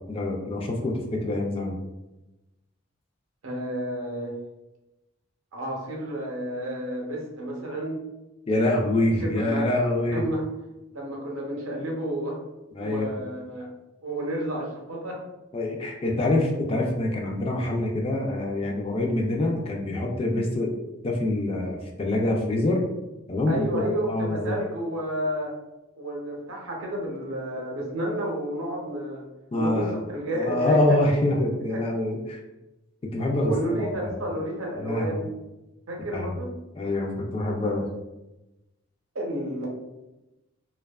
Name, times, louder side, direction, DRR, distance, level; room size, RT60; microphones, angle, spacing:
voice 1, 0.0-1.7 8.5-10.2 12.7-13.2 15.5-20.7 21.0-22.8 23.3-24.6 29.5-30.0 30.3-32.4 33.1-34.3 34.8-35.3 36.1-36.3 36.7-37.9, left 1 dB, 30° left, 1 dB, 0.3 m, -25 dB
voice 2, 3.4-4.4 5.5-8.0 9.2-9.7 10.1-10.4 10.9-12.4 12.8-13.7 14.0-15.2 23.5-25.5 26.0-29.2 29.5-30.8 31.7-31.8 33.4-35.3 35.9-36.5 39.1-39.7, right 1 dB, 80° right, -1 dB, 0.7 m, -31 dB
2.6 x 2.2 x 2.2 m, 0.99 s
head